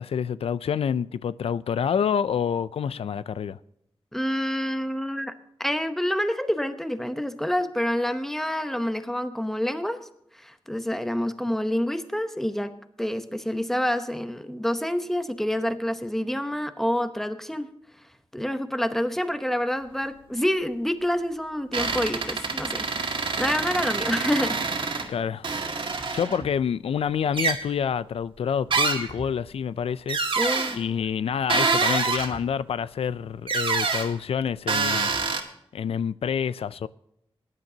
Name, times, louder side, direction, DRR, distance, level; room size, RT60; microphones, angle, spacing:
voice 1, 0.0-3.6 25.1-25.5 26.1-30.2 30.7-35.1 35.7-36.9, left 7 dB, 85° left, 0.4 m, -27 dB
voice 2, 4.1-5.3 5.6-10.0 10.4-12.7 13.0-17.7 18.3-24.6 30.4-30.8, equal, 5° left, 0.8 m, -27 dB
sound 1, 21.7-25.1 25.4-26.5 27.3-27.6 28.7-29.3 30.1-30.8 31.5-32.4 33.5-34.1 34.7-35.4, right 4 dB, 60° right, 1.9 m, -26 dB
20.5 x 10.5 x 2.8 m
wide cardioid pair, 150°, 10 cm